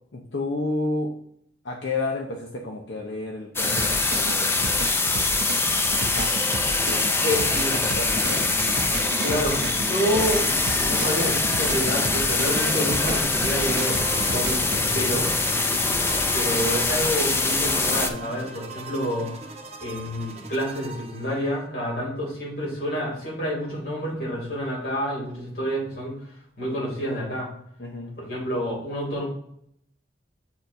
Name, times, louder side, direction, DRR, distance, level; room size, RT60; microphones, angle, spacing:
voice 1, 0.1-1.1 1.6-4.5 6.0-6.3 6.9-8.5 15.7-16.1 27.8-28.2, left 2 dB, 80° left, 1 dB, 0.7 m, -31 dB
sound 1, 3.6-18.1, left 3 dB, 15° left, 0.3 m, -23 dB
sound 2, 3.8-14.8, right 3 dB, 70° right, 0.5 m, -34 dB
voice 2, 7.2-7.7 9.2-15.3 16.3-19.3 19.8-26.2 26.6-27.5 28.2-29.3, equal, 55° left, -3 dB, 2.6 m, -28 dB
sound 3, 13.2-21.7, right 3 dB, 35° right, 0.8 m, -41 dB
8.6 x 4.4 x 2.6 m, 0.71 s
head